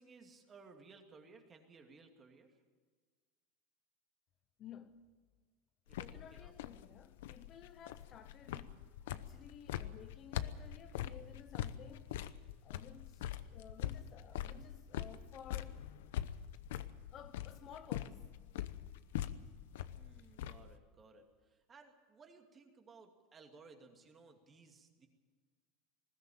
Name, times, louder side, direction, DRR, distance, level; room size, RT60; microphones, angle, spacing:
voice 1, 0.0-2.6 5.9-6.5 19.9-25.1, right 4 dB, 20° right, 2.5 m, -60 dB
voice 2, 4.6-5.1 6.0-8.8 9.0-12.2 12.6-15.9 17.1-18.3, left 9 dB, 35° left, 0.8 m, -55 dB
sound 1, 5.9-20.8, left 11 dB, 85° left, 0.9 m, -43 dB
20.0 x 16.0 x 8.7 m
supercardioid pair, 145°, 0 cm